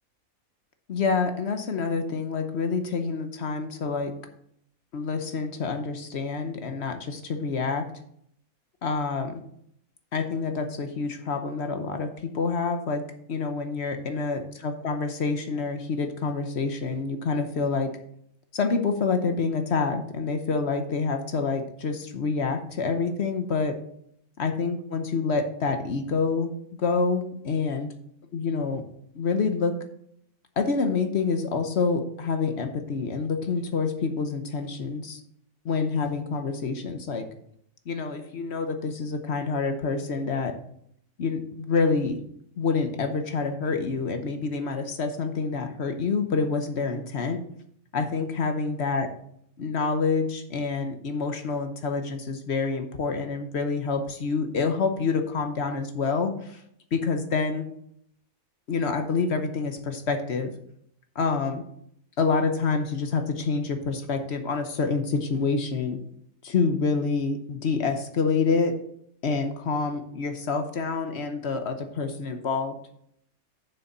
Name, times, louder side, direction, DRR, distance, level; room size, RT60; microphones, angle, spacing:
voice 1, 0.9-4.1 4.9-7.9 8.8-9.4 10.1-13.0 13.3-17.9 18.5-23.8 24.4-26.5 26.8-27.9 28.3-28.8 29.1-29.8 30.6-35.2 35.6-37.3 37.9-40.5 41.2-42.2 42.6-47.4 47.9-49.1 49.6-56.6 56.9-57.7 58.7-60.5 61.1-61.6 62.2-66.0 66.4-68.8 69.2-72.8, left 4 dB, 55° left, 7 dB, 1.1 m, -27 dB
6.8 x 6.7 x 5.4 m, 0.70 s
omnidirectional pair, 1.5 m